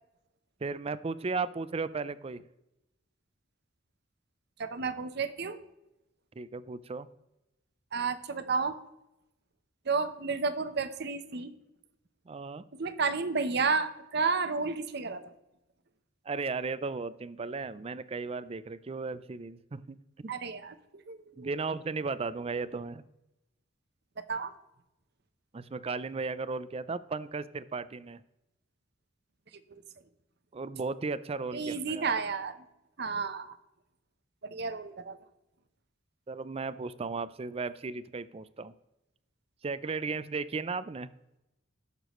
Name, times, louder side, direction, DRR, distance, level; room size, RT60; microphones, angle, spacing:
voice 1, 0.6-2.4 6.4-7.1 12.3-12.6 16.3-20.3 21.4-23.0 25.5-28.2 30.5-32.1 34.5-34.6 36.3-38.7 39.6-41.1, right 4 dB, 30° right, 16 dB, 0.4 m, -35 dB
voice 2, 4.6-5.6 7.9-8.8 9.9-11.5 12.8-15.3 20.3-21.5 24.2-24.5 29.7-29.8 31.5-32.6 33.0-33.6 34.5-35.2, right 4 dB, 55° right, 10 dB, 0.8 m, -32 dB
17.5 x 6.8 x 3.1 m, 0.93 s
head